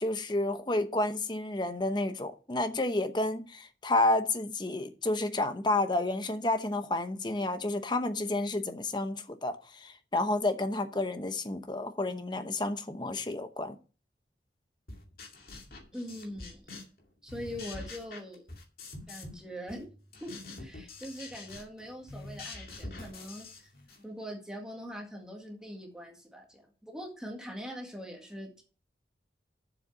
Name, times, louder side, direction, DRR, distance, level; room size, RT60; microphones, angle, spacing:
voice 1, 0.0-13.8, left 2 dB, 25° left, 0.8 m, -30 dB
sound 1, 14.9-17.0 17.3-19.4 19.7-24.0, left 2 dB, 55° left, 2.4 m, -45 dB
voice 2, 15.9-16.7 17.2-18.5 19.1-19.9 20.2-23.7 24.0-28.6, equal, 5° right, 1.8 m, -42 dB
7.4 x 6.5 x 7.5 m
head